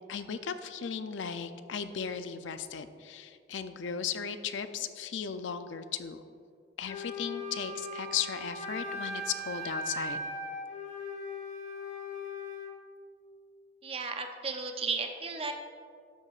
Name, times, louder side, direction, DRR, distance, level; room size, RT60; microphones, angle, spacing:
voice 1, 0.1-6.2 6.8-10.2, left 7 dB, 85° left, 10 dB, 0.5 m, -36 dB
Wind instrument woodwind instrument, 6.8-12.7, left 1 dB, 40° left, 1.0 m, -39 dB
voice 2, 13.8-15.5, right 4 dB, 30° right, 5 dB, 0.6 m, -34 dB
12.0 x 8.2 x 2.5 m, 2.3 s
head